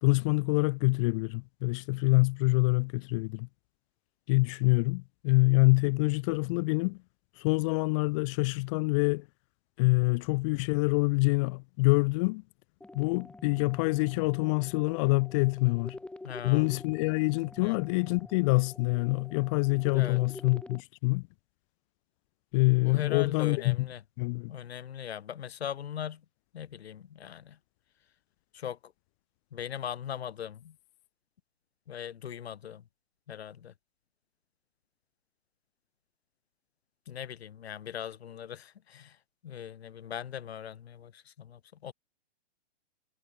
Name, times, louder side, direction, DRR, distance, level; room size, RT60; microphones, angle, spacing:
voice 1, 0.0-3.5 4.3-7.0 7.4-9.2 9.8-12.4 12.9-16.0 16.4-21.2 22.5-23.9 24.2-24.5, left 27 dB, 30° left, 1.3 m, -26 dB
sound 1, 12.8-20.8, left 2 dB, 5° left, 4.2 m, -47 dB
voice 2, 16.2-16.7 17.6-17.8 19.9-20.2 22.8-24.0 24.5-26.2 26.5-27.6 28.5-28.9 29.5-30.8 31.9-32.8 33.3-33.7 37.1-39.2 39.4-41.9, left 9 dB, 70° left, 4.0 m, -40 dB
hypercardioid pair, 160°, 33 cm